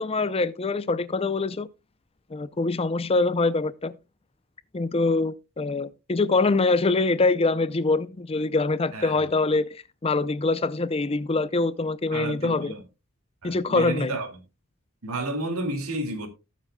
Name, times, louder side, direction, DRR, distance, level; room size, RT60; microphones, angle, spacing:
voice 1, 0.0-1.7 2.3-3.9 4.7-9.7 10.0-12.7 13.4-14.2, left 3 dB, 25° left, 0.5 m, -24 dB
voice 2, 12.1-12.8 13.4-14.4 15.0-16.3, right 2 dB, 85° right, 2.4 m, -31 dB
18.5 x 7.3 x 2.2 m
head